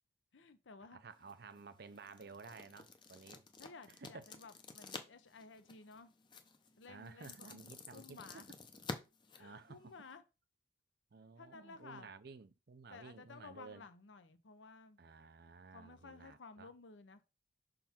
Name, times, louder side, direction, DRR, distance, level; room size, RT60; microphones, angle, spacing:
voice 1, 0.3-1.0 3.6-6.1 6.8-8.5 9.4-10.2 11.4-12.1 12.9-15.0 15.7-17.2, left 4 dB, 80° left, 0.8 m, -55 dB
voice 2, 0.9-3.4 4.0-4.3 6.9-8.2 9.4-9.9 11.1-13.9 15.0-16.7, right 4 dB, 55° right, 0.6 m, -54 dB
sound 1, 1.1-10.2, left 3 dB, 25° left, 0.6 m, -52 dB
5.8 x 3.8 x 4.3 m
head